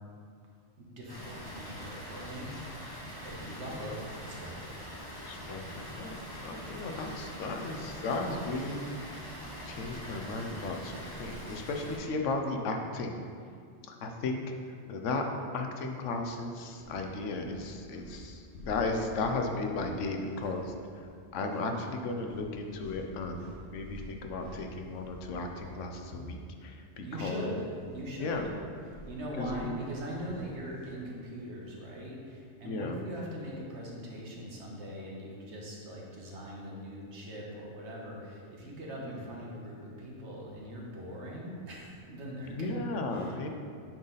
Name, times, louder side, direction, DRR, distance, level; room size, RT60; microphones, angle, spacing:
voice 1, 0.8-2.9 3.2-4.7 27.0-27.6 27.9-28.5 29.1-42.8 43.1-43.5, equal, 70° right, -3 dB, 1.5 m, -41 dB
Water, 1.1-12.0, equal, 20° left, 1.2 m, -43 dB
voice 2, 5.2-8.8 9.2-9.4 9.7-13.2 13.9-14.4 14.9-15.2 15.5-20.7 21.3-27.5 28.2-28.4 29.4-29.7 32.6-33.0 39.0-39.2 42.5-43.5, left 3 dB, 90° left, 3 dB, 1.1 m, -35 dB
sound 1, 16.0-16.3 16.7-21.2 21.4-21.7 22.2-27.3 27.6-31.0, left 1 dB, 75° left, 1.4 m, -49 dB
8.6 x 4.0 x 3.9 m, 2.3 s
omnidirectional pair, 1.2 m